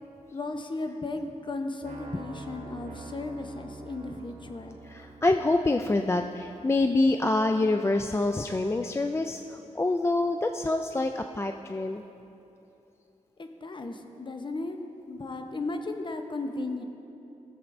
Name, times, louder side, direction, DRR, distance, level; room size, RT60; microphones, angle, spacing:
voice 1, 0.3-4.8 13.4-14.8 15.1-16.8, left 2 dB, 40° left, 6 dB, 0.7 m, -35 dB
sound 1, 1.8-7.7, right 3 dB, 80° right, 1.0 m, -47 dB
voice 2, 4.9-9.4 9.7-12.0, left 2 dB, 20° left, 5 dB, 0.3 m, -26 dB
15.5 x 7.2 x 2.6 m, 2.9 s
cardioid pair, 60°, 13 cm